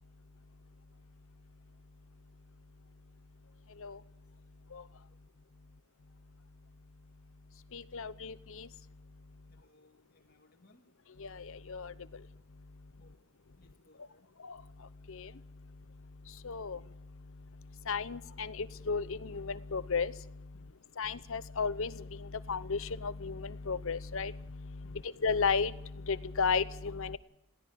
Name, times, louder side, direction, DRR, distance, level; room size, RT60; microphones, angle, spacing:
voice 1, 7.7-8.7 11.2-11.3 11.7-11.9 15.1-15.2 16.4-16.8 17.9-20.1 21.0-21.9 22.5-24.3 25.2-25.7 26.1-27.2, left 5 dB, 65° left, 15 dB, 0.8 m, -33 dB
voice 2, 9.5-10.9 13.0-14.3 20.5-20.8 24.8-25.0, left 2 dB, 45° left, 0 dB, 2.2 m, -65 dB
22.0 x 16.0 x 8.5 m, 0.82 s
head